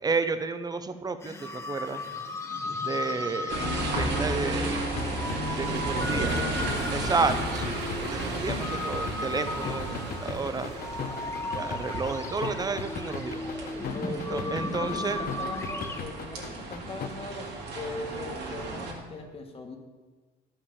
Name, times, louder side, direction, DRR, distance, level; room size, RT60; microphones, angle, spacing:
voice 1, 0.0-2.0 2.8-3.6 3.9-4.9 5.6-6.3 6.9-10.7 11.5-13.4 14.3-15.2, right 4 dB, 25° right, 10 dB, 0.7 m, -31 dB
sound 1, 1.2-16.0, left 2 dB, 15° left, 1.0 m, -36 dB
sound 2, 3.5-17.1, left 7 dB, 60° left, 1.0 m, -37 dB
sound 3, 3.5-18.9, right 3 dB, 85° right, 2.3 m, -34 dB
voice 2, 5.7-7.3 13.9-19.8, left 3 dB, 35° left, 4 dB, 1.6 m, -39 dB
11.5 x 5.7 x 7.0 m, 1.4 s
cardioid pair, 110°, 17 cm